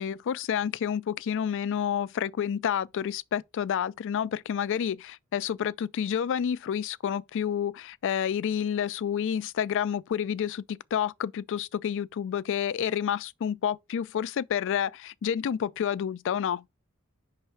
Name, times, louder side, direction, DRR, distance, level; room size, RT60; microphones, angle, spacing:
voice 1, 0.0-16.6, left 8 dB, 60° left, 0.3 m, -29 dB
5.5 x 3.2 x 5.6 m
head